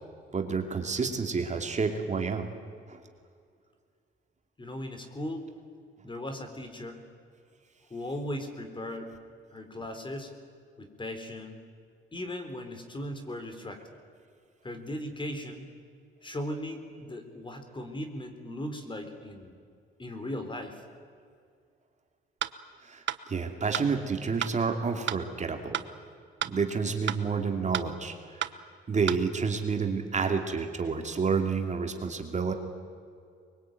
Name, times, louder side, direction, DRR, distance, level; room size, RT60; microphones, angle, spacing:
voice 1, 0.3-2.5 2.9-3.0 22.8-25.8 26.4-28.1 28.9-32.5, right 5 dB, 35° right, 4 dB, 2.8 m, -29 dB
voice 2, 4.6-5.4 6.0-7.0 7.9-9.2 9.5-10.3 10.8-11.7 12.1-13.8 14.6-15.7 16.2-19.5 20.0-20.8, left 1 dB, 25° left, 6 dB, 3.9 m, -38 dB
sound 1, 22.4-22.5 23.1-23.2 23.7-23.9 24.4-24.5 25.1-25.2 25.7-25.9 26.4-26.5 27.1-27.2 27.7-27.9 28.4-28.5 29.1-29.2, right 11 dB, 65° right, 1.1 m, -31 dB
24.0 x 22.0 x 9.3 m, 2.3 s
cardioid pair, 90°, 20 cm